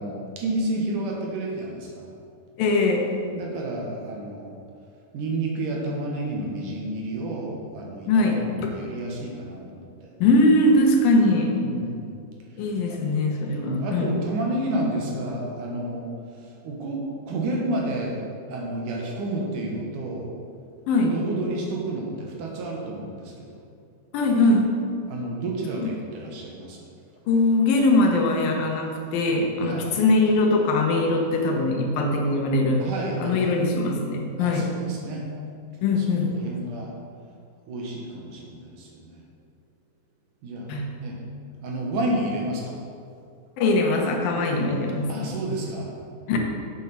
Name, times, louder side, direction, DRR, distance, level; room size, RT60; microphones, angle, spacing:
voice 1, 0.0-2.1 3.3-4.6 5.1-10.1 11.6-12.2 13.5-16.1 16.4-18.2 18.5-20.3 21.0-23.5 25.1-26.9 29.6-29.9 32.8-33.4 34.4-35.3 36.0-36.9 37.7-39.2 40.4-40.7 41.0-41.2 41.6-42.8 45.1-45.9, right 1 dB, 65° right, -1 dB, 2.7 m, -30 dB
voice 2, 2.6-3.1 8.1-8.7 10.2-11.6 12.6-14.1 20.9-21.1 24.1-24.7 25.8-25.9 27.3-32.8 33.2-34.7 35.8-36.3 40.7-40.9 43.6-45.3 46.3-46.4, left 2 dB, 80° left, 1 dB, 2.8 m, -21 dB
8.2 x 7.4 x 5.8 m, 2.4 s
omnidirectional pair, 4.1 m